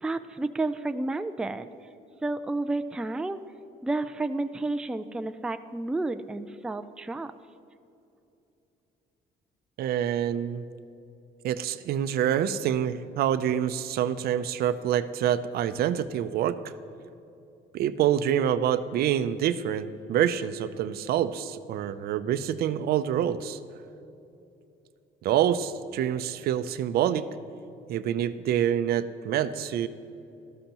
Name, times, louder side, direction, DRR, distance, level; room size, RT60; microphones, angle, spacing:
voice 1, 0.0-1.9 2.2-3.4 3.8-7.3, right 2 dB, 5° right, 10 dB, 0.3 m, -31 dB
voice 2, 9.8-10.6 11.4-16.7 17.7-23.6 25.2-27.3 27.9-29.9, right 10 dB, 65° right, 12 dB, 0.5 m, -26 dB
13.0 x 13.0 x 3.0 m, 2.8 s
cardioid pair, 110°, 17 cm